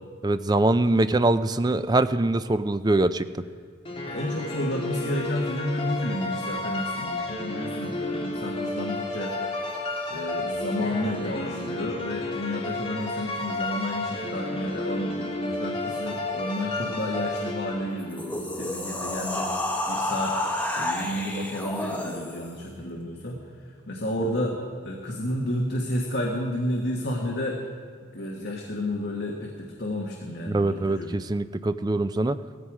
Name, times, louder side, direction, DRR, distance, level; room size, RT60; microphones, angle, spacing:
voice 1, 0.2-3.3 30.5-32.4, right 2 dB, 20° right, 12 dB, 0.4 m, -23 dB
sound 1, 3.8-18.2, left 2 dB, 30° left, 1.8 m, -32 dB
voice 2, 4.1-9.4 10.1-20.3 20.7-23.4 23.9-27.6 28.1-31.1, left 1 dB, 55° left, -1 dB, 1.5 m, -31 dB
sound 2, 18.0-22.6, left 1 dB, 10° left, 1.4 m, -30 dB
17.0 x 15.0 x 4.9 m, 2.1 s
head